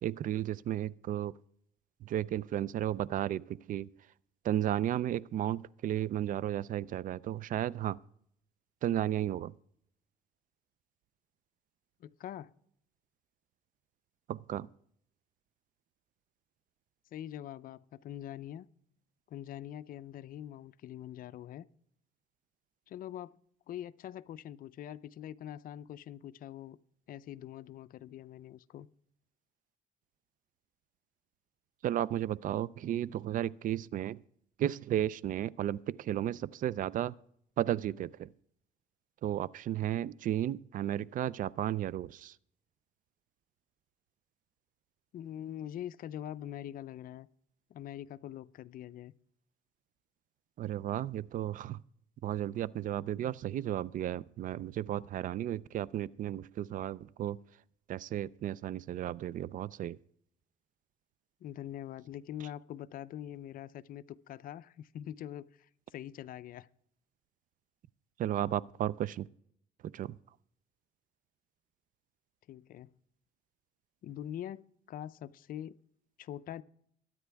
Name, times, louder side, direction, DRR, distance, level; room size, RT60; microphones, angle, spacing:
voice 1, 0.0-1.4 2.0-3.9 4.4-8.0 8.8-9.5 14.3-14.7 31.8-34.2 34.6-37.1 37.6-38.3 39.2-42.3 50.6-51.8 52.2-57.4 57.9-60.0 68.2-69.3 69.8-70.2, right 11 dB, 50° right, 0.4 m, -34 dB
voice 2, 12.0-12.5 17.1-18.7 19.3-21.7 22.9-23.4 23.7-26.8 27.1-28.9 45.1-47.3 47.7-49.1 61.4-66.7 72.5-72.9 74.0-74.6 74.9-75.8 76.2-76.6, left 11 dB, 55° left, 0.5 m, -44 dB
22.5 x 9.2 x 3.4 m
cardioid pair, 110°, 17 cm